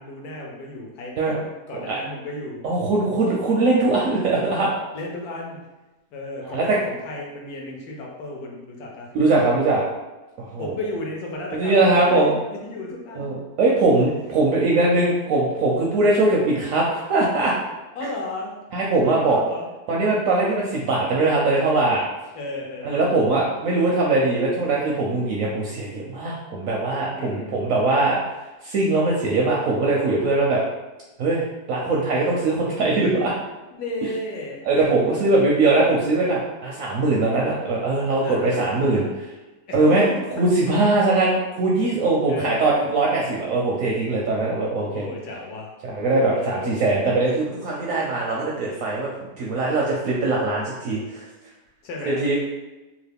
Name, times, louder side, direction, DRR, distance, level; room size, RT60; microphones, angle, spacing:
voice 1, 0.0-2.6 4.9-5.6 6.1-9.1 10.6-13.3 17.9-18.6 19.1-19.7 22.3-23.2 27.1-27.5 33.7-34.8 35.5-35.6 38.2-39.1 39.7-40.2 42.3-42.9 44.9-45.7 46.3-47.2 51.8-52.4, left 2 dB, 70° left, -1 dB, 1.1 m, -34 dB
voice 2, 2.6-4.7 6.5-6.8 9.1-9.8 10.4-10.8 11.5-12.3 13.2-17.5 18.7-19.4 19.9-22.0 22.8-28.2 28.6-30.6 31.2-33.3 34.7-39.1 39.7-45.0 45.8-49.1 49.4-51.2 52.1-52.4, right 2 dB, 70° right, -3 dB, 0.8 m, -21 dB
3.0 x 2.4 x 3.4 m, 1.1 s
omnidirectional pair, 1.8 m